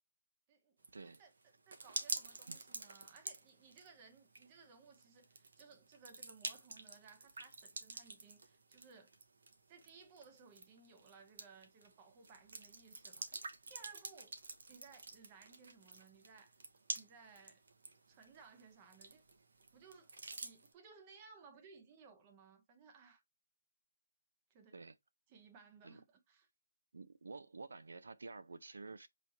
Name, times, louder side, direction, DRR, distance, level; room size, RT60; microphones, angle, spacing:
sound 1, 0.8-20.7, right 3 dB, 50° right, 0.9 m, -49 dB
voice 1, 1.7-9.1 9.7-13.4 13.7-14.3 14.7-16.6 16.9-17.6 18.1-19.2 19.7-20.1 20.4-23.2 24.5-24.8 25.3-26.5, right 5 dB, 15° right, 0.6 m, -60 dB
voice 2, 26.9-29.1, right 3 dB, 75° right, 0.6 m, -50 dB
5.8 x 3.1 x 2.7 m
hypercardioid pair, 180°, 0 cm